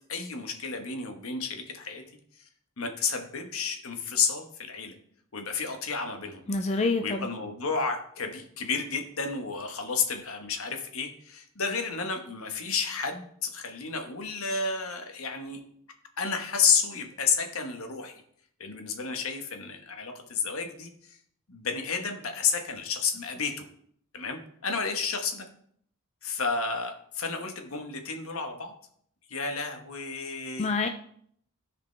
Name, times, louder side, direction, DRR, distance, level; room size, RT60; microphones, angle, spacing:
voice 1, 0.1-2.0 2.4-2.5 2.8-4.9 5.3-6.4 7.0-15.6 16.2-18.2 18.6-21.2 21.5-23.7 24.1-25.5 26.2-28.7 29.3-30.7, left 5 dB, 70° left, 4 dB, 1.2 m, -31 dB
voice 2, 6.5-7.3 30.6-30.9, left 3 dB, 30° left, 6 dB, 0.4 m, -26 dB
13.5 x 5.0 x 3.3 m, 0.65 s
head